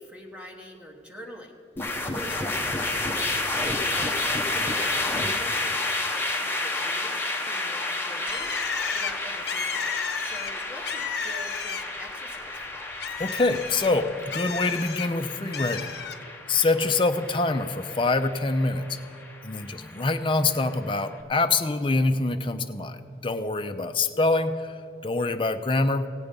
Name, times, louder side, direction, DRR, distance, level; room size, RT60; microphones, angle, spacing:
voice 1, 0.0-12.9, equal, 5° right, 0 dB, 1.2 m, -43 dB
sound 1, 1.8-21.0, left 2 dB, 10° left, 0.9 m, -31 dB
Bird, 8.3-12.1 12.5-15.1 15.5-16.2, left 6 dB, 60° left, 0.8 m, -33 dB
voice 2, 13.2-15.9 16.5-19.0 19.4-24.8 25.0-26.1, left 3 dB, 30° left, 8 dB, 0.5 m, -25 dB
16.5 x 8.3 x 5.2 m, 2.6 s
head